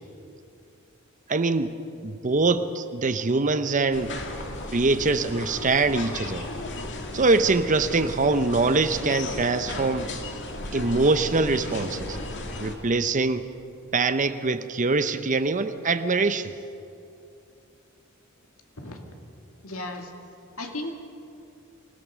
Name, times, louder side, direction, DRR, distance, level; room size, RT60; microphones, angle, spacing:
voice 1, 1.3-4.2 4.7-6.5 7.1-10.1 10.7-12.2 12.6-13.5 13.9-16.5, right 3 dB, 35° right, 10 dB, 0.8 m, -23 dB
sound 1, 3.9-12.8, left 2 dB, 60° left, 2.1 m, -35 dB
voice 2, 19.6-20.1 20.6-20.9, left 2 dB, 75° left, 3 dB, 2.2 m, -34 dB
26.0 x 16.5 x 6.3 m, 2.6 s
head